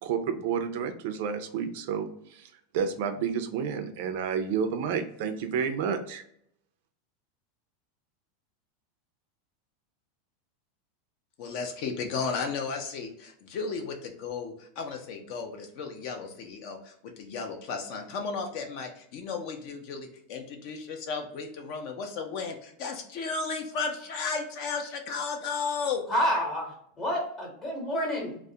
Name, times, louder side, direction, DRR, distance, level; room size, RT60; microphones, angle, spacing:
voice 1, 0.0-6.2, right 7 dB, 65° right, 8 dB, 0.4 m, -30 dB
voice 2, 11.4-26.1, left 5 dB, 50° left, 4 dB, 0.5 m, -34 dB
voice 3, 26.1-28.4, equal, 30° left, -1 dB, 0.8 m, -29 dB
2.3 x 2.0 x 2.7 m, 0.69 s
supercardioid pair, 150°, 0 cm